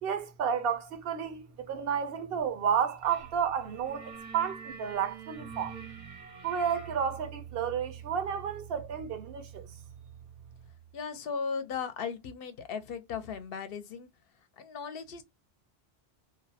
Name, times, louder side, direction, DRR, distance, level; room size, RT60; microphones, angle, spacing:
voice 1, 0.0-5.8 6.4-9.7, right 7 dB, 70° right, 0.7 m, -31 dB
sound 1, 3.1-3.3 3.6-10.2, right 7 dB, 90° right, 1.0 m, -46 dB
voice 2, 10.9-14.1 14.6-15.2, left 6 dB, 70° left, 0.7 m, -37 dB
2.4 x 2.0 x 2.6 m
omnidirectional pair, 1.1 m